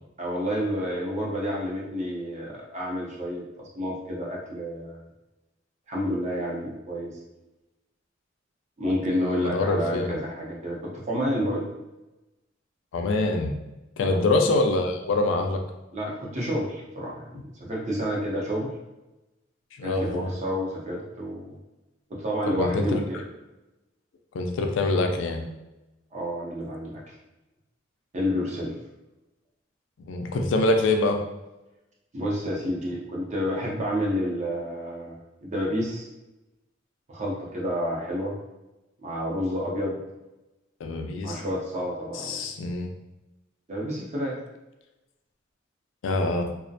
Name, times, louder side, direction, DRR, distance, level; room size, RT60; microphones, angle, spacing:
voice 1, 0.2-5.0 5.9-7.2 8.8-11.7 14.0-14.2 15.9-18.7 19.8-21.6 22.1-23.2 26.1-27.0 28.1-28.7 32.1-36.1 37.1-38.3 39.0-40.0 41.2-42.4 43.7-44.4, equal, 35° right, -3 dB, 0.6 m, -29 dB
voice 2, 9.1-10.2 12.9-13.5 14.0-15.6 19.8-20.3 22.6-23.0 24.3-25.4 30.0-31.2 40.8-41.4 42.1-42.9 46.0-46.5, left 2 dB, 70° left, 4 dB, 0.3 m, -25 dB
2.3 x 2.1 x 2.6 m, 1.0 s
head